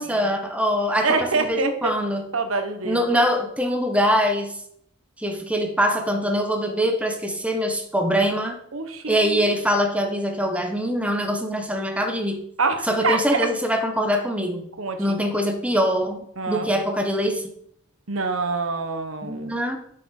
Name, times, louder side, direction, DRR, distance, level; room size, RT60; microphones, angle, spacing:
voice 1, 0.0-2.3 2.8-4.5 5.2-8.6 9.1-12.4 12.8-14.7 15.0-17.4 19.2-19.8, equal, 5° right, 4 dB, 1.3 m, -23 dB
voice 2, 1.0-1.9 2.3-3.1 8.7-9.5 12.6-13.5 14.8-15.2 16.4-16.7 18.1-19.5, right 4 dB, 70° right, 7 dB, 1.3 m, -25 dB
7.6 x 6.8 x 6.6 m, 0.69 s
head